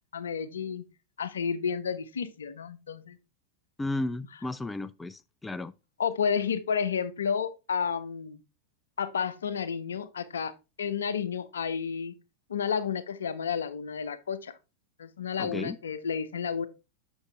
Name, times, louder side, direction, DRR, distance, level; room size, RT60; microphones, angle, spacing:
voice 1, 0.1-0.9 1.2-3.2 6.0-8.4 9.0-10.5 10.8-12.1 12.5-14.5 15.0-16.7, left 6 dB, 65° left, 0.7 m, -31 dB
voice 2, 3.8-5.7 15.4-15.8, left 2 dB, 10° left, 0.3 m, -34 dB
8.1 x 6.2 x 3.4 m
figure-of-eight pair, 90°, 0 cm